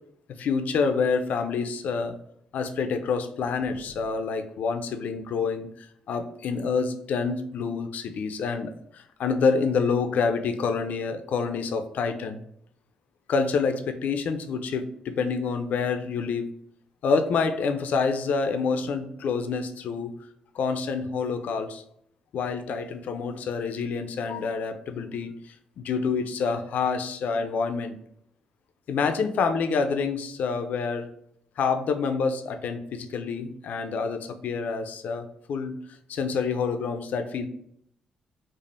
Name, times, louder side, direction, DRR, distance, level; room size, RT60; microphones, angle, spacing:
voice 1, 0.4-2.2 2.5-12.4 13.3-16.5 17.0-20.1 20.5-21.8 22.3-25.3 25.8-28.0 28.9-31.1 31.6-35.8 36.1-37.5, left 5 dB, 70° left, 8 dB, 0.3 m, -27 dB
3.2 x 2.0 x 2.5 m, 0.71 s
supercardioid pair, 60°, 3 cm